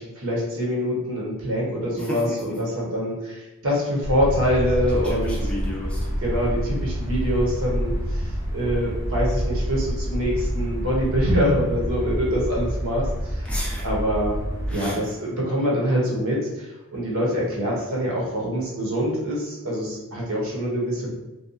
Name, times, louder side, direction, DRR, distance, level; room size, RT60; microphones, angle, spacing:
voice 1, 0.0-5.4 6.2-8.3 8.5-13.0 13.3-13.5 13.8-14.4 14.7-21.1, equal, 65° right, -3 dB, 0.8 m, -25 dB
voice 2, 2.0-2.3 5.0-6.1 13.5-13.8 14.7-15.0, left 1 dB, 5° left, -4 dB, 0.3 m, -33 dB
sound 1, 4.0-14.7, equal, 15° right, 0.7 m, -27 dB
2.7 x 2.2 x 2.5 m, 1.1 s
head